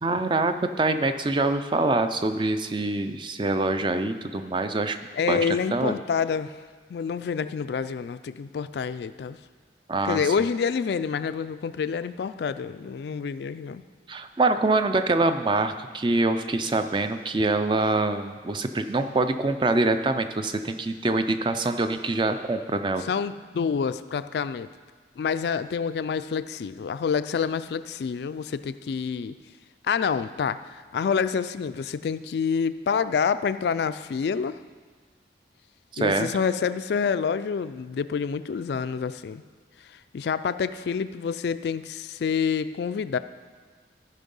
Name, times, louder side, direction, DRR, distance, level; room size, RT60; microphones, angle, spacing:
voice 1, 0.0-5.0 5.3-5.4 5.7-5.9 9.9-10.2 14.1-23.1 35.9-36.3, right 2 dB, 25° right, 8 dB, 0.4 m, -25 dB
voice 2, 5.1-6.6 6.9-9.4 10.0-13.8 23.0-24.7 25.2-29.4 29.8-34.6 36.0-39.4 39.8-43.2, left 6 dB, 65° left, 13 dB, 0.3 m, -27 dB
14.0 x 5.3 x 5.4 m, 1.5 s
head